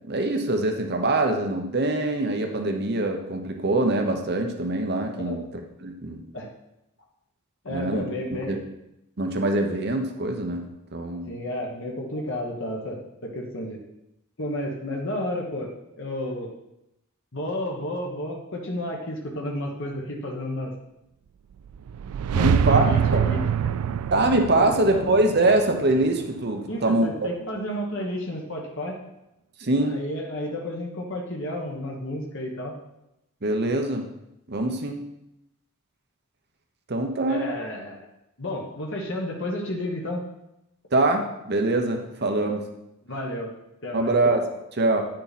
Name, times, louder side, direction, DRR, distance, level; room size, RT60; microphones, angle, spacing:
voice 1, 0.0-5.4 5.8-6.2 7.7-8.6 9.2-10.6 10.9-11.3 22.4-22.9 23.1-23.3 24.1-27.1 29.6-30.0 33.4-34.0 34.5-35.0 36.9-37.5 40.9-42.6 43.9-44.5 44.7-45.0, right 2 dB, 50° right, 4 dB, 1.0 m, -23 dB
voice 2, 7.6-8.5 11.3-13.8 14.4-15.7 16.0-16.5 17.3-20.7 22.3-23.4 23.6-23.8 24.6-25.0 26.7-29.0 29.9-32.7 37.3-38.1 38.4-40.3 43.0-43.5 43.8-44.1, left 1 dB, 60° left, -1 dB, 1.4 m, -31 dB
sound 1, 21.6-26.7, right 8 dB, 90° right, 0.3 m, -25 dB
9.6 x 6.5 x 4.3 m, 0.87 s
head